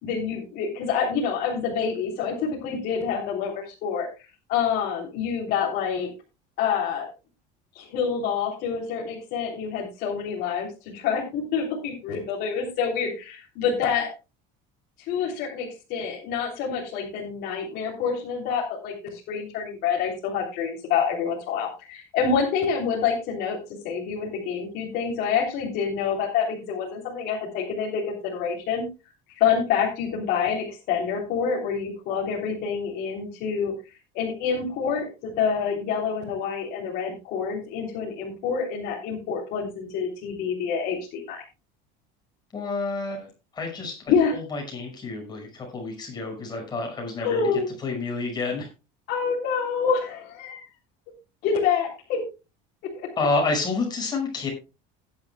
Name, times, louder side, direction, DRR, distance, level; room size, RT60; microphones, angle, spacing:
voice 1, 0.0-4.1 4.5-6.1 6.6-7.1 7.7-14.1 15.0-28.8 29.3-33.7 34.1-41.4 44.1-44.3 47.2-47.7 49.1-50.7 51.4-52.2 52.9-53.1, left 6 dB, 50° left, -4 dB, 3.3 m, -27 dB
voice 2, 42.5-43.3 43.5-44.0 44.3-47.5 47.8-48.7 53.2-54.5, left 3 dB, 20° left, 1 dB, 5.7 m, -29 dB
17.0 x 10.5 x 2.3 m, 0.28 s
cardioid pair, 165°, 20 cm